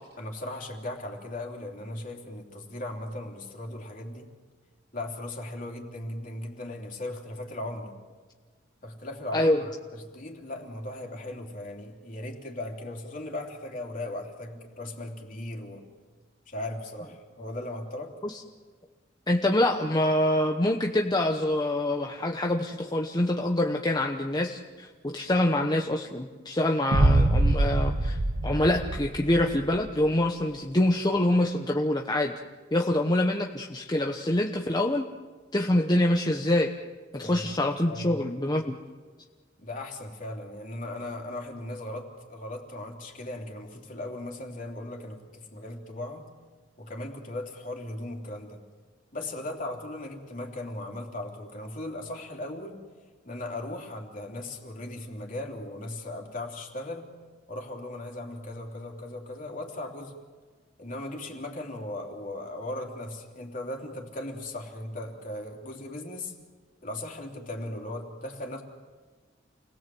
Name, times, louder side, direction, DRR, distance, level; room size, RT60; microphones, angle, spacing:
voice 1, 0.2-4.3 4.9-7.9 8.8-15.8 16.5-18.1 37.2-37.5 37.9-38.2 39.6-46.3 46.8-48.6 49.1-52.8 53.2-57.1 57.5-60.2 60.8-66.3 66.8-68.6, left 1 dB, 45° left, 1 dB, 3.4 m, -37 dB
voice 2, 19.3-32.3 32.7-35.1 35.5-36.7 37.1-38.7, left 1 dB, 20° left, 2 dB, 1.0 m, -25 dB
sound 1, 26.9-29.9, right 1 dB, 70° right, 1.3 m, -24 dB
29.5 x 20.5 x 7.8 m, 1.4 s
head